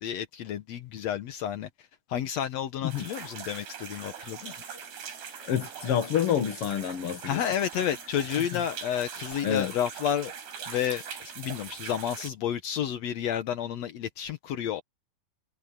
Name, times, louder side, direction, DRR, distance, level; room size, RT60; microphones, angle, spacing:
voice 1, 0.0-4.5 7.3-10.3 10.7-11.0 11.4-14.8, left 9 dB, 80° left, 1.5 m, -31 dB
sound 1, 2.9-12.3, right 7 dB, 85° right, 6.4 m, -41 dB
voice 2, 5.4-7.4 9.4-9.7, left 9 dB, 55° left, 1.6 m, -27 dB
omnidirectional pair, 4.6 m